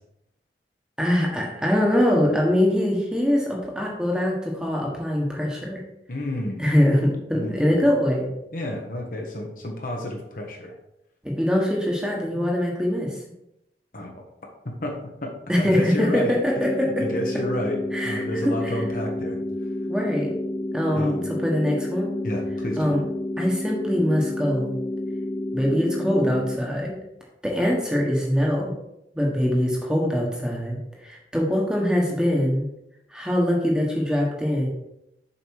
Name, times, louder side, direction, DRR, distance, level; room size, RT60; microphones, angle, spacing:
voice 1, 1.0-5.8 6.6-8.3 11.2-13.2 15.5-17.1 17.9-18.8 19.9-20.3 20.7-22.1 22.8-23.0 23.4-24.8 25.5-27.0 27.4-28.7 29.1-32.7 33.1-34.7, equal, 5° right, -2 dB, 1.4 m, -23 dB
voice 2, 6.1-6.7 7.3-7.9 8.5-10.7 13.9-14.2 14.8-16.4 16.8-19.4 20.9-21.2 22.2-22.9, left 1 dB, 50° left, 1 dB, 1.3 m, -30 dB
sound 1, 16.6-26.6, left 1 dB, 15° left, 0.5 m, -30 dB
7.1 x 5.3 x 4.8 m, 0.85 s
head